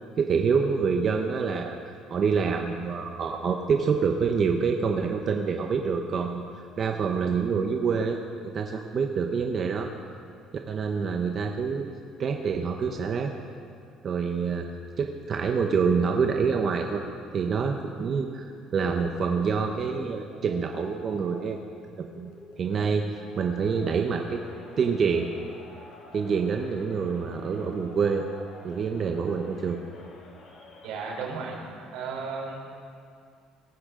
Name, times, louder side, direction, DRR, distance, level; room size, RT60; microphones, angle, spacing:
voice 1, 0.2-1.8 2.1-6.4 6.8-8.2 8.5-9.9 10.7-11.9 12.2-13.3 14.0-14.7 15.0-17.0 17.3-21.6 22.1-22.3 22.6-23.1 23.4-24.4 24.8-25.3 26.1-28.3 28.6-29.8, right 5 dB, 40° right, 3 dB, 0.9 m, -26 dB
sound 1, 19.9-28.6, left 3 dB, 85° left, 3.4 m, -51 dB
Crowd, 23.5-31.6, left 2 dB, 70° left, 3.1 m, -51 dB
voice 2, 30.8-31.6 31.9-32.7, right 4 dB, 85° right, -1 dB, 3.7 m, -34 dB
18.5 x 15.0 x 3.8 m, 2.3 s
cardioid pair, 130°, 0 cm